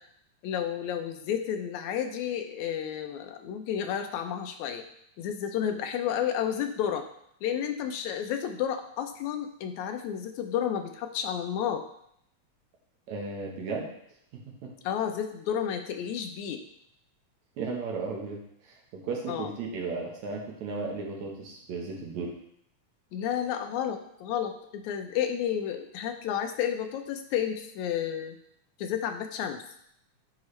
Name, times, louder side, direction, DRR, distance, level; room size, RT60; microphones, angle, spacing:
voice 1, 0.4-4.9 5.2-7.1 7.4-11.8 14.8-16.6 19.3-19.5 23.1-28.4 28.8-29.6, left 9 dB, 80° left, 6 dB, 2.0 m, -31 dB
voice 2, 13.1-13.9 17.6-18.4 18.7-22.3, right 4 dB, 75° right, -1 dB, 2.5 m, -35 dB
9.7 x 4.7 x 3.2 m, 0.71 s
omnidirectional pair, 3.3 m